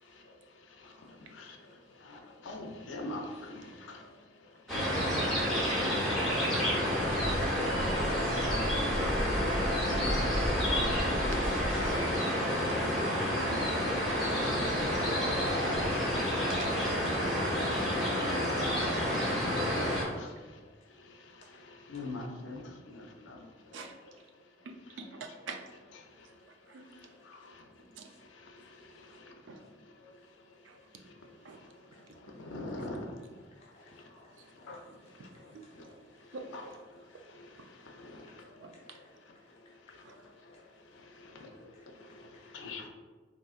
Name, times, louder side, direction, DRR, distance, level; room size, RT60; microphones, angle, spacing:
voice 1, 2.0-4.0 5.0-5.1 8.0-8.4 9.8-10.2 12.1-12.8 17.5-17.6 18.0-18.1 18.7-19.6 20.1-20.3 21.7-23.4 23.7-23.9 27.3-27.6 29.0-29.1 32.4-33.1 34.7-34.8 35.2-35.3 35.8-35.9 36.5-36.7 37.3-37.5 37.8-38.5 40.1-40.2 41.2-41.5 41.9-42.1 42.5-42.9, left 2 dB, 80° left, 0.5 m, -43 dB
sound 1, 4.7-20.0, equal, ahead, 0.9 m, -29 dB
voice 2, 10.2-10.6 11.1-12.2 12.7-12.8 15.8-15.9 16.5-17.1 19.1-19.2 23.7-23.9 25.0-25.2 25.5-25.6 26.9-27.0 28.0-28.1 29.5-29.6 31.4-31.6 36.3-36.4 38.6-38.7 40.1-40.2, right 4 dB, 70° right, 0.4 m, -45 dB
voice 3, 33.4-33.8 34.2-34.9 35.4-36.2 37.1-37.2 37.6-38.9 39.5-40.0 40.7-41.0 41.5-41.9 42.2-42.7, left 1 dB, 35° left, 0.8 m, -64 dB
3.7 x 2.7 x 2.4 m
head